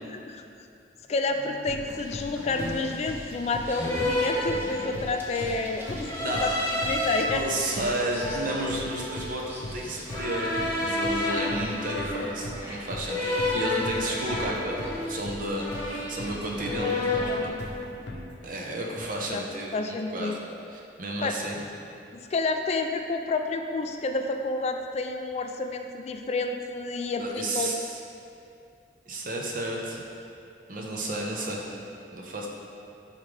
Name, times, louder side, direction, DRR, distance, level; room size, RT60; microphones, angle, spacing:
voice 1, 0.1-0.4 1.1-7.4 19.3-19.4 19.7-20.4 21.2-21.3 22.1-27.7, left 3 dB, 40° left, 5 dB, 0.3 m, -29 dB
sound 1, 1.4-1.6 2.4-3.0 3.8-5.2 6.0-7.2 7.7-9.3 10.1-12.4 13.0-15.3 15.5-16.3 16.6-17.5, left 2 dB, 15° left, 1.3 m, -30 dB
sound 2, 1.7-18.5, left 1 dB, 70° left, 0.7 m, -40 dB
sound 3, 1.9-16.8, equal, 15° right, 0.9 m, -44 dB
voice 2, 6.2-6.7 7.3-17.5 18.4-20.4 20.7-21.6 27.2-27.8 29.1-30.1 30.7-31.7 32.1-32.5, right 1 dB, 50° right, -1 dB, 0.9 m, -32 dB
9.9 x 3.7 x 3.3 m, 2.5 s
head